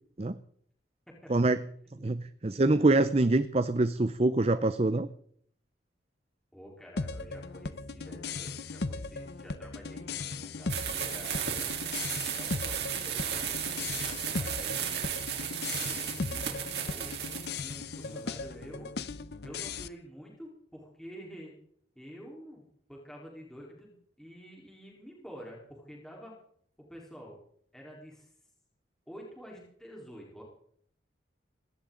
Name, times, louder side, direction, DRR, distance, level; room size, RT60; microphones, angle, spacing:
voice 1, 1.2-1.5 1.9-2.1 6.5-11.5 12.3-15.4 16.0-16.5 16.9-17.3 17.6-18.9 19.4-21.5 22.0-26.3 26.8-27.4 27.7-28.3 29.1-30.4, equal, 5° left, -3 dB, 3.8 m, -49 dB
voice 2, 2.0-5.1, right 2 dB, 35° right, 13 dB, 0.6 m, -25 dB
sound 1, 7.0-19.9, left 3 dB, 60° left, 0.8 m, -38 dB
sound 2, 10.7-17.6, right 8 dB, 65° right, 3.5 m, -34 dB
20.0 x 17.5 x 3.8 m, 0.65 s
head